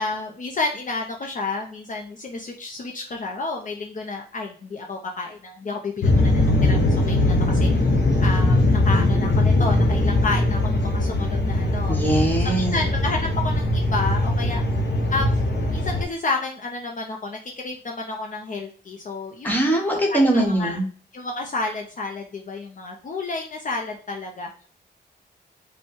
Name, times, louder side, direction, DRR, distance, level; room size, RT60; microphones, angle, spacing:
voice 1, 0.0-7.7 8.2-12.0 12.4-14.6 15.1-19.5 20.1-20.8 21.1-24.5, left 3 dB, 45° left, 2 dB, 0.5 m, -30 dB
sound 1, 6.0-16.0, left 2 dB, 80° left, 1.2 m, -20 dB
voice 2, 11.9-12.8 19.4-20.8, right 1 dB, 10° left, 0 dB, 1.2 m, -21 dB
5.1 x 2.2 x 3.6 m, 0.43 s
wide cardioid pair, 130°, 18 cm